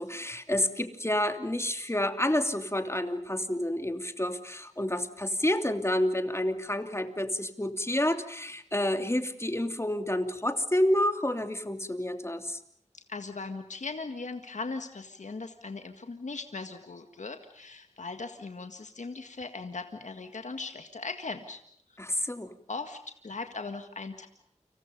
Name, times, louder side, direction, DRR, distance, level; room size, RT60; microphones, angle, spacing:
voice 1, 0.0-12.6 22.0-22.5, left 1 dB, 20° left, 7 dB, 2.9 m, -29 dB
voice 2, 12.9-21.6 21.9-22.0 22.7-24.3, left 3 dB, 85° left, 6 dB, 1.8 m, -39 dB
29.5 x 27.0 x 5.4 m, 0.67 s
wide cardioid pair, 55°, 12 cm